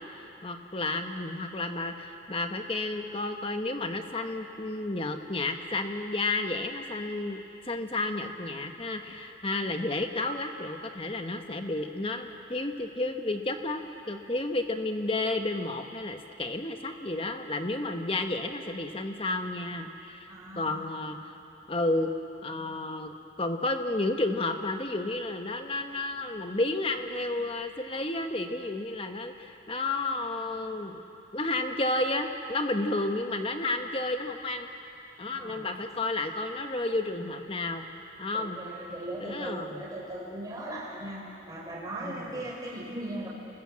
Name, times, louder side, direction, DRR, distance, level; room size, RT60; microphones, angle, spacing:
voice 1, 0.0-20.3 20.6-21.2 21.7-22.1 22.4-31.1 31.3-34.7 35.2-37.9 38.2-38.6 39.2-39.8 42.0-42.4, left 2 dB, 25° left, 6 dB, 1.2 m, -31 dB
voice 2, 20.3-20.9 35.3-35.6 38.3-43.3, right 1 dB, 20° right, -4 dB, 5.1 m, -38 dB
28.5 x 20.5 x 7.7 m, 2.9 s
head